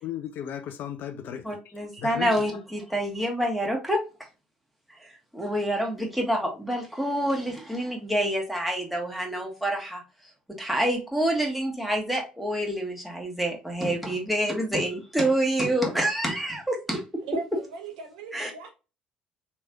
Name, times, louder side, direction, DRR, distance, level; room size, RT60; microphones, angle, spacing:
voice 1, 0.0-2.6 3.0-3.1, left 10 dB, 50° left, 0.4 m, -36 dB
voice 2, 1.4-4.0 5.0-10.0 10.6-17.0 18.3-18.5, right 1 dB, ahead, 1.4 m, -27 dB
voice 3, 17.2-18.7, right 3 dB, 65° right, 0.8 m, -38 dB
4.3 x 3.1 x 2.2 m
figure-of-eight pair, 55°, 4 cm